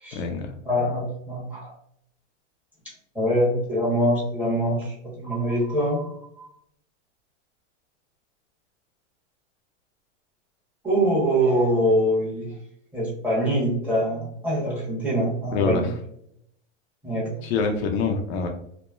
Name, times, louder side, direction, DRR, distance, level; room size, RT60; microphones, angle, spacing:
voice 1, 0.1-0.5 15.5-15.9 17.4-18.5, left 4 dB, 60° left, 3 dB, 0.5 m, -25 dB
voice 2, 0.6-1.7 3.1-6.5 10.8-12.5 12.9-15.9 17.0-17.3, equal, 5° right, -6 dB, 1.0 m, -24 dB
2.9 x 2.1 x 2.3 m, 0.71 s
supercardioid pair, 140°, 36 cm